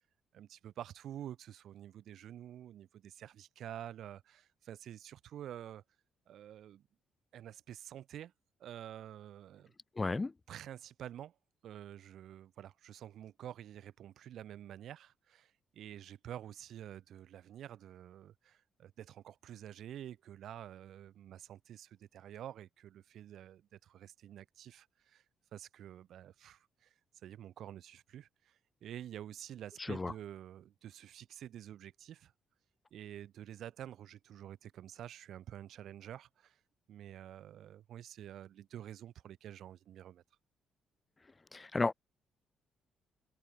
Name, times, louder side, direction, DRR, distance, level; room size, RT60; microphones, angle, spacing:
voice 1, 0.3-5.8 6.3-6.8 7.3-8.3 8.6-9.7 10.5-11.3 11.6-25.2 25.5-26.9 27.2-32.3 32.9-36.6 36.9-40.2, right 11 dB, 70° right, 6.6 m, -49 dB
voice 2, 10.0-10.3 29.9-30.1 41.5-41.9, left 3 dB, 25° left, 0.5 m, -33 dB
cardioid pair, 90°, 0 cm